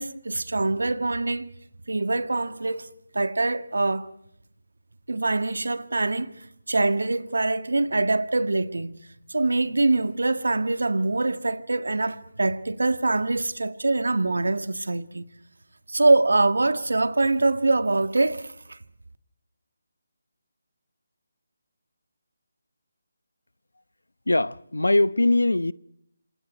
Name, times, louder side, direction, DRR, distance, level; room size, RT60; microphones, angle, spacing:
voice 1, 0.0-1.5 1.9-2.9 3.1-4.1 5.1-6.3 6.7-8.9 9.3-15.2 15.9-18.8, right 2 dB, 70° right, 1.8 m, -24 dB
voice 2, 24.3-25.7, left 2 dB, 80° left, 0.9 m, -21 dB
28.0 x 26.5 x 4.5 m
figure-of-eight pair, 155°, 0 cm